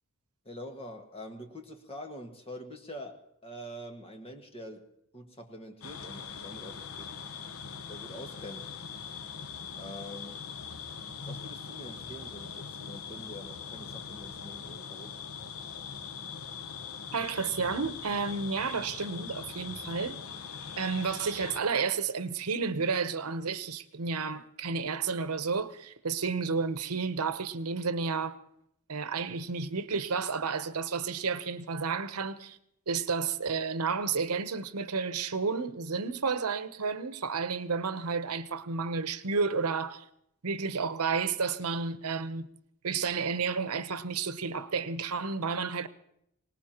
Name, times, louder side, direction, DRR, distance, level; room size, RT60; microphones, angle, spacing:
voice 1, 0.4-4.9 5.1-7.2 7.9-8.7 9.7-10.4 11.2-15.2, equal, 25° left, 1.6 m, -45 dB
sound 1, 5.8-21.6, left 6 dB, 70° left, 0.8 m, -42 dB
voice 2, 17.1-20.2 20.8-28.4 28.9-32.6 32.9-40.0 40.4-42.5 42.8-45.9, right 5 dB, 85° right, 0.8 m, -31 dB
24.5 x 19.0 x 2.9 m
head